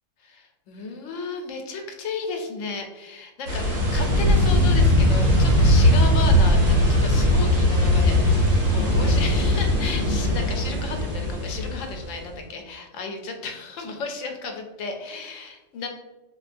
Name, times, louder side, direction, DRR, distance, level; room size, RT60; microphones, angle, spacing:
voice 1, 0.2-3.6 3.9-15.9, left 4 dB, 80° left, 3 dB, 0.9 m, -34 dB
sound 1, 3.5-12.1, left 1 dB, 85° right, 1.4 m, -19 dB
4.3 x 2.1 x 2.5 m, 1.1 s
omnidirectional pair, 1.3 m